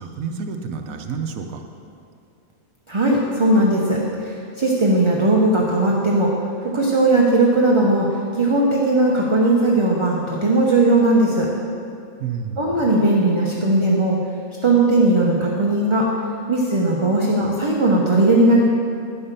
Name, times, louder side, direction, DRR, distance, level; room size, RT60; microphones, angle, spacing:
voice 1, 0.0-1.6 12.2-12.8, right 6 dB, 75° right, 5 dB, 1.1 m, -29 dB
voice 2, 2.9-6.3 6.6-8.1 8.3-11.5 12.6-14.2 14.6-16.1 16.5-18.6, right 2 dB, 30° right, -3 dB, 0.7 m, -18 dB
9.9 x 5.6 x 6.6 m, 2.5 s
omnidirectional pair, 1.5 m